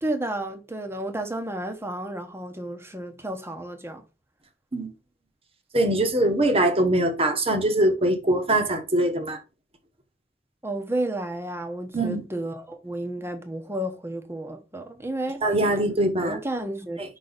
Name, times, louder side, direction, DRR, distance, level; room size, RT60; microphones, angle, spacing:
voice 1, 0.0-4.0 10.6-15.4 16.2-17.0, right 1 dB, 15° right, 1.1 m, -31 dB
voice 2, 5.7-9.4 11.9-12.2 15.4-16.4, right 1 dB, 30° right, 1.3 m, -22 dB
5.5 x 4.1 x 5.2 m
head